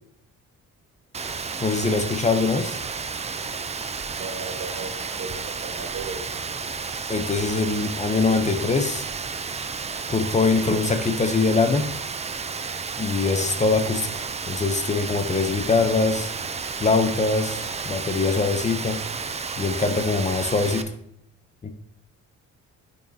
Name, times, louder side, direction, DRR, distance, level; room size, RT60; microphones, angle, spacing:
Rain, 1.1-20.8, right 5 dB, 20° right, 0.4 m, -32 dB
voice 1, 1.6-2.8 7.1-9.1 10.1-11.9 13.0-16.3 16.8-19.0 19.6-20.8 21.6-21.7, left 4 dB, 25° left, 7 dB, 0.7 m, -23 dB
voice 2, 4.2-6.2, right 4 dB, 65° right, -1 dB, 2.1 m, -36 dB
8.8 x 5.4 x 2.8 m, 0.71 s
cardioid pair, 90°, 30 cm